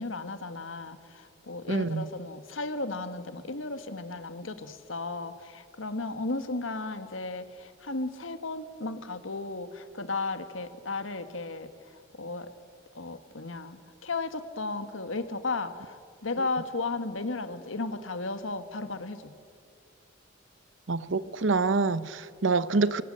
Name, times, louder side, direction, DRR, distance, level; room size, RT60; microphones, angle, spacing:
voice 1, 0.0-11.7 12.2-12.5 13.0-19.3, left 3 dB, 85° left, 1.6 m, -35 dB
voice 2, 1.7-2.1 20.9-23.0, right 3 dB, 70° right, 0.9 m, -26 dB
24.5 x 24.5 x 7.7 m
head